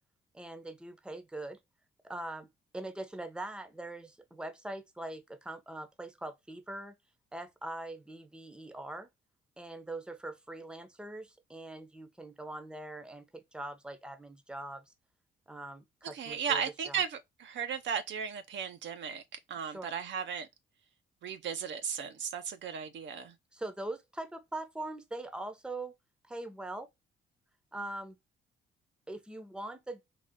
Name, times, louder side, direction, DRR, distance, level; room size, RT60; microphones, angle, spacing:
voice 1, 0.3-1.6 2.0-6.9 7.3-9.1 9.6-14.9 15.5-17.0 19.6-19.9 23.5-25.9 26.3-26.9 27.7-28.2 29.1-30.0, right 2 dB, 5° right, 0.8 m, -42 dB
voice 2, 16.1-19.2 19.5-20.5 21.2-23.3, right 7 dB, 70° right, 0.8 m, -35 dB
4.0 x 2.4 x 3.6 m
cardioid pair, 90°, 20 cm